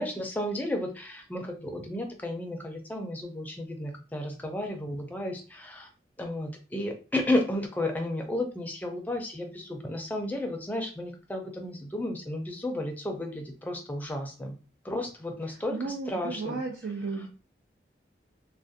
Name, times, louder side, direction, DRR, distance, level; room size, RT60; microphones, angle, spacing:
voice 1, 0.0-5.9 6.2-14.6 14.8-16.6, left 1 dB, 10° left, 3 dB, 0.4 m, -33 dB
voice 2, 15.7-17.3, right 4 dB, 75° right, 1 dB, 0.4 m, -34 dB
2.4 x 2.1 x 2.6 m, 0.35 s
head